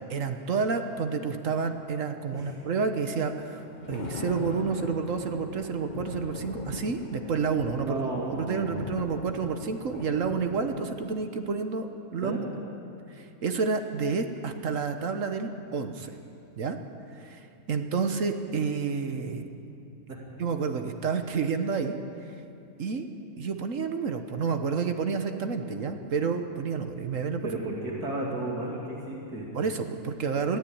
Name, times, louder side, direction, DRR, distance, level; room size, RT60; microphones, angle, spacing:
voice 1, 0.1-8.0 8.3-11.9 12.1-12.4 13.1-16.1 16.6-16.8 17.2-19.5 20.4-22.0 22.8-23.1 23.4-27.5 29.5-30.6, right 5 dB, 60° right, 7 dB, 1.4 m, -29 dB
Thunder, 3.5-11.3, left 4 dB, 35° left, 0.9 m, -40 dB
voice 2, 7.8-8.9 12.2-12.5 20.1-20.2 27.4-29.5, right 2 dB, 85° right, -3 dB, 3.1 m, -33 dB
21.0 x 15.0 x 8.7 m, 2.6 s
omnidirectional pair, 1.6 m